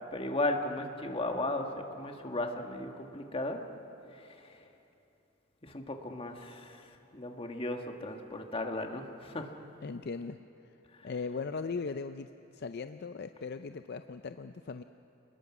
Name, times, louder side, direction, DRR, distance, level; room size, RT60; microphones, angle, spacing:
voice 1, 0.1-3.6 4.3-4.6 5.6-9.5, left 2 dB, 30° left, 4 dB, 1.6 m, -36 dB
voice 2, 9.8-10.4 11.0-12.3 12.5-14.8, left 4 dB, 55° left, 9 dB, 0.5 m, -38 dB
29.0 x 20.0 x 6.1 m, 2.8 s
head